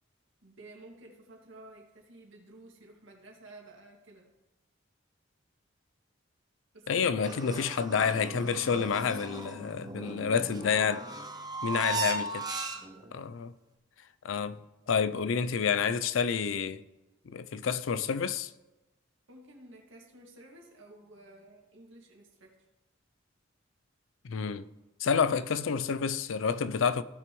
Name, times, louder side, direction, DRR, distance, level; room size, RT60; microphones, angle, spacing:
voice 1, 0.4-4.3 6.7-7.4 11.7-12.2 19.3-22.5, right 2 dB, 75° right, 2.1 m, -52 dB
voice 2, 6.9-11.1 11.6-12.5 13.1-13.5 14.2-14.6 14.9-16.8 17.3-18.5 24.2-24.7 25.0-27.0, left 6 dB, 85° left, 0.4 m, -29 dB
sound 1, 7.2-13.1, right 3 dB, 20° right, 0.8 m, -37 dB
15.5 x 5.9 x 3.1 m
head